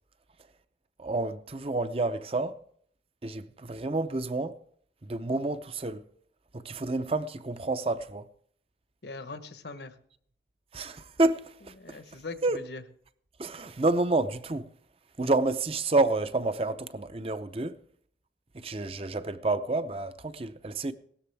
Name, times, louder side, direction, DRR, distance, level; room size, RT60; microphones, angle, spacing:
voice 1, 1.0-2.6 3.2-4.6 5.0-6.0 6.5-8.2 10.7-12.0 12.4-12.6 13.4-14.7 15.2-17.8 18.6-20.9, right 2 dB, 30° right, 0.6 m, -29 dB
voice 2, 9.0-10.0 11.8-12.8, left 3 dB, 70° left, 1.1 m, -41 dB
17.5 x 13.0 x 3.4 m
head